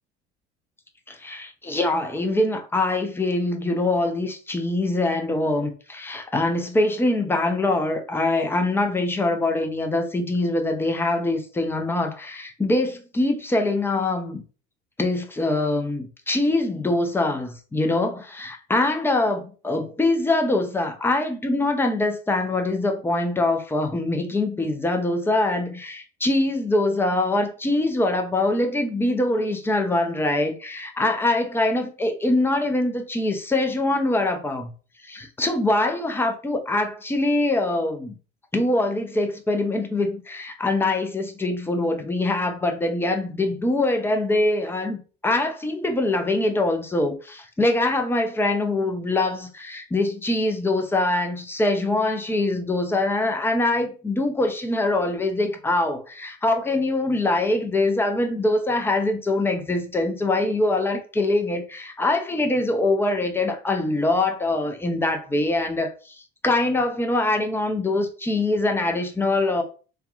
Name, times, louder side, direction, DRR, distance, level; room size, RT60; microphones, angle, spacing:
voice 1, 1.1-14.4 15.0-34.7 35.0-38.1 38.5-45.0 45.2-69.6, left 2 dB, 5° left, 0.5 m, -23 dB
3.4 x 2.2 x 2.4 m
figure-of-eight pair, 60°, 32 cm